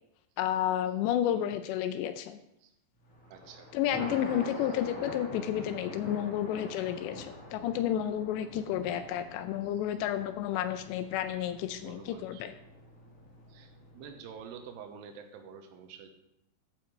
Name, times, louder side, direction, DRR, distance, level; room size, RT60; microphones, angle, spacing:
voice 1, 0.4-2.4 3.7-12.5, left 11 dB, 85° left, 9 dB, 2.8 m, -31 dB
Thunder, 3.1-14.4, left 1 dB, 40° left, 1.1 m, -45 dB
voice 2, 3.3-3.7 4.6-4.7 8.8-9.3 9.6-9.7 11.7-12.7 13.5-16.1, right 6 dB, 80° right, 6 dB, 3.0 m, -49 dB
14.0 x 9.1 x 3.2 m, 0.82 s
omnidirectional pair, 5.0 m